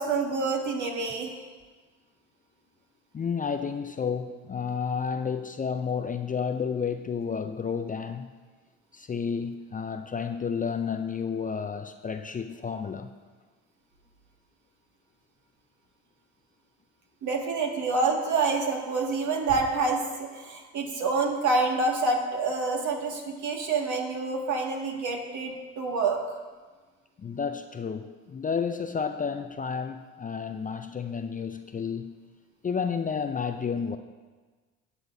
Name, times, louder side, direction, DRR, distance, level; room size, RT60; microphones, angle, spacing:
voice 1, 0.0-1.3 17.2-26.2, right 3 dB, 55° right, 0 dB, 2.1 m, -27 dB
voice 2, 3.1-8.3 8.9-13.1 27.2-32.1 32.6-34.0, left 6 dB, 25° left, 8 dB, 0.5 m, -31 dB
17.5 x 7.2 x 2.7 m, 1.4 s
hypercardioid pair, 65°, 35 cm